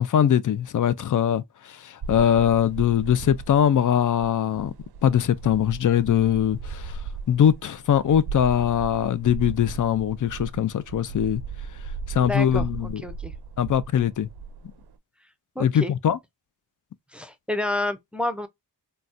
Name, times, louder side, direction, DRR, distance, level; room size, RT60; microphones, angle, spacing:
voice 1, 0.0-4.7 5.0-7.0 7.3-11.4 12.1-13.0 13.6-14.3 15.6-16.2, left 9 dB, 50° left, 0.4 m, -22 dB
sound 1, 2.0-14.9, right 5 dB, 65° right, 0.5 m, -37 dB
voice 2, 12.2-12.7 13.0-13.3 15.6-15.9 17.1-18.5, left 1 dB, 5° right, 0.5 m, -29 dB
3.9 x 2.2 x 2.5 m
wide cardioid pair, 90°, 41 cm